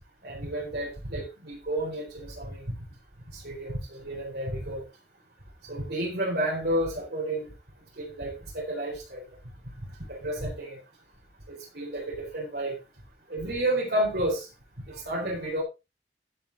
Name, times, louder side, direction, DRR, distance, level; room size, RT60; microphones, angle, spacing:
voice 1, 0.2-2.7 3.3-4.9 5.6-7.5 8.0-9.2 10.1-10.8 11.5-12.8 13.3-14.5 14.9-15.6, right 1 dB, 65° right, 4.2 m, -31 dB
12.0 x 7.3 x 4.1 m
head